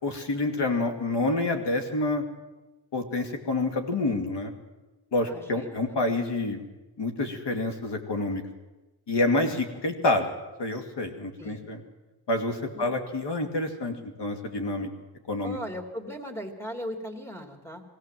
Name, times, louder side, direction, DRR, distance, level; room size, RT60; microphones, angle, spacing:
voice 1, 0.0-2.2 2.9-4.5 5.1-6.6 7.0-8.4 9.1-10.3 10.6-11.8 12.3-14.9 15.3-15.6, left 2 dB, 60° left, 5 dB, 2.7 m, -28 dB
voice 2, 5.2-6.0 11.4-11.7 12.7-12.9 15.4-17.8, equal, 5° left, 4 dB, 3.1 m, -38 dB
21.0 x 16.5 x 7.7 m, 1.1 s
cardioid pair, 80°, 46 cm